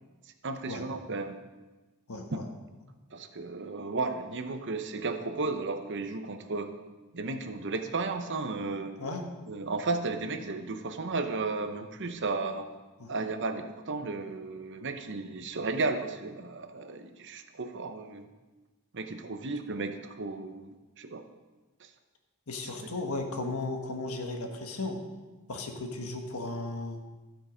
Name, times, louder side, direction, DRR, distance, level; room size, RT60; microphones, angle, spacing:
voice 1, 0.4-1.4 2.3-2.4 3.1-6.7 7.1-8.9 9.5-12.7 13.1-18.3 18.9-20.7 21.0-21.2 22.8-22.9, right 3 dB, 55° right, 7 dB, 0.9 m, -34 dB
voice 2, 2.1-2.5 9.0-9.3 13.0-13.1 22.5-25.0 25.5-27.0, left 2 dB, 75° left, 4 dB, 1.4 m, -35 dB
13.0 x 7.6 x 5.1 m, 1.2 s
head